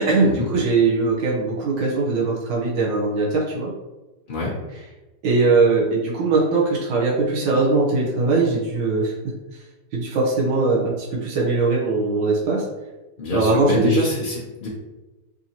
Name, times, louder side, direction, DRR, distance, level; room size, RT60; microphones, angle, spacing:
voice 1, 0.0-3.7 5.2-9.1 9.9-12.6 13.3-14.1, right 3 dB, 85° right, -4 dB, 1.5 m, -20 dB
voice 2, 13.2-14.7, left 2 dB, 70° left, -6 dB, 0.4 m, -25 dB
5.4 x 2.7 x 2.8 m, 1.1 s
omnidirectional pair, 2.0 m